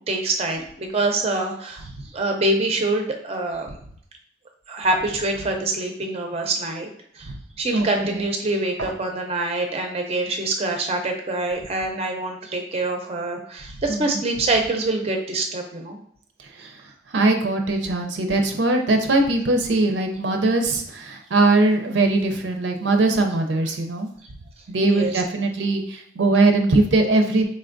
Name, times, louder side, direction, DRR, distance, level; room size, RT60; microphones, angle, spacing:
voice 1, 0.1-1.9 2.1-3.8 4.7-6.9 7.2-7.3 7.6-16.0 16.6-16.7 24.8-25.2, right 2 dB, 35° right, 3 dB, 0.5 m, -25 dB
voice 2, 7.7-8.2 8.8-8.9 13.9-14.2 16.6-16.7 17.1-24.1 24.7-27.5, right 2 dB, 80° right, 4 dB, 0.5 m, -21 dB
4.2 x 3.3 x 2.5 m, 0.65 s
head